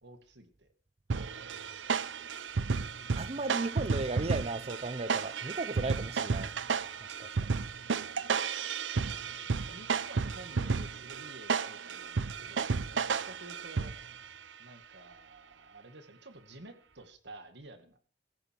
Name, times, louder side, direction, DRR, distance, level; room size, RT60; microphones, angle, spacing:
voice 1, 0.0-0.7 9.1-13.9 14.6-18.0, right 2 dB, 65° right, 2.1 m, -51 dB
voice 2, 1.1-1.7 3.1-6.5 7.2-7.5 9.1-9.2, right 3 dB, 35° right, 0.7 m, -36 dB
sound 1, 1.1-14.3, right 5 dB, 85° right, 0.6 m, -33 dB
15.0 x 15.0 x 4.6 m
head